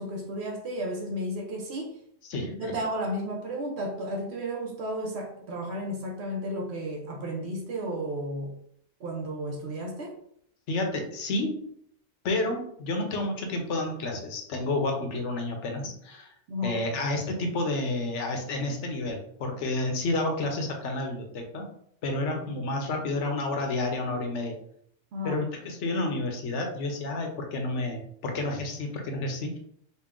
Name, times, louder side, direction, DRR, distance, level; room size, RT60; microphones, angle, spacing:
voice 1, 0.0-2.0 2.4-8.5 9.0-10.2 16.5-16.8 25.1-25.4, equal, 65° right, 2 dB, 0.9 m, -33 dB
voice 2, 2.3-2.8 10.7-11.6 12.2-16.3 16.6-21.7 22.0-24.6 25.2-29.6, left 2 dB, 75° left, 3 dB, 1.1 m, -30 dB
4.2 x 2.2 x 3.6 m, 0.68 s
omnidirectional pair, 1.2 m